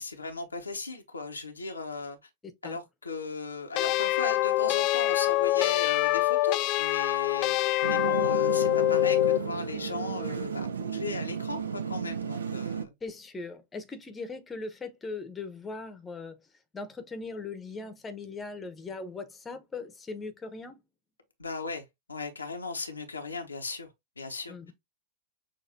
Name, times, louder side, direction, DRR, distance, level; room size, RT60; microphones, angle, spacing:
voice 1, 0.0-2.2 2.6-7.6 7.9-12.9 21.4-23.9 24.2-24.7, left 3 dB, 80° left, 0.8 m, -37 dB
sound 1, 3.8-9.5, left 17 dB, 40° left, 0.3 m, -25 dB
sound 2, 7.8-12.8, right 6 dB, 70° right, 0.6 m, -33 dB
voice 2, 13.0-16.4 16.7-20.8 24.5-24.7, left 3 dB, 15° left, 0.9 m, -39 dB
6.5 x 2.6 x 2.6 m
figure-of-eight pair, 90°, 0 cm